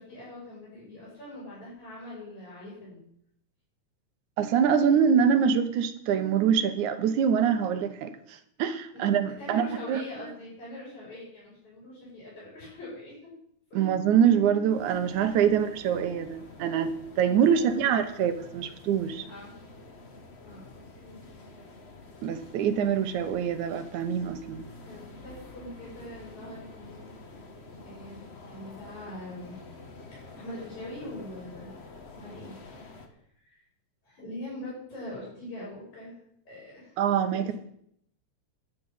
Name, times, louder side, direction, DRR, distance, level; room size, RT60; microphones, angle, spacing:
voice 1, 0.0-3.0 9.4-13.1 13.7-13.9 15.4-15.6 17.5-18.2 19.3-19.5 20.4-20.6 21.0-21.2 24.9-27.0 27.8-29.6 30.1-31.9 32.2-32.9 33.4-33.7 34.0-36.2 36.5-37.0 37.3-37.5, left 1 dB, 75° left, -7 dB, 7.9 m, -43 dB
voice 2, 4.4-10.0 13.7-19.2 22.2-24.7 37.0-37.5, right 8 dB, 85° right, 9 dB, 2.5 m, -25 dB
sound 1, 14.7-33.1, left 3 dB, 50° left, 0.7 m, -48 dB
11.5 x 6.4 x 9.0 m, 0.71 s
omnidirectional pair, 3.3 m